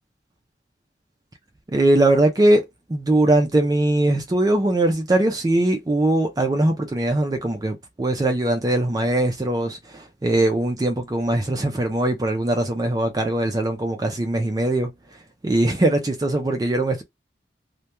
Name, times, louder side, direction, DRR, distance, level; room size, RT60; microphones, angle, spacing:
voice 1, 1.7-2.6 2.9-14.9 15.4-17.0, right 1 dB, 20° right, 0.3 m, -21 dB
2.2 x 2.2 x 2.9 m
head